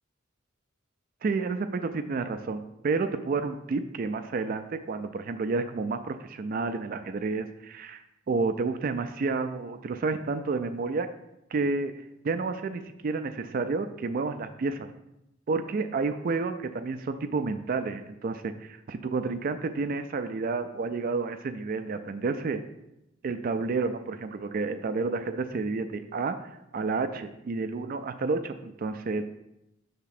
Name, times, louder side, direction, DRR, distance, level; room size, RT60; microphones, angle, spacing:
voice 1, 1.2-11.1 11.5-11.9 12.2-14.9 15.5-22.6 23.2-26.4 26.7-29.2, right 4 dB, 45° right, 9 dB, 0.3 m, -30 dB
6.8 x 3.6 x 5.8 m, 0.88 s
head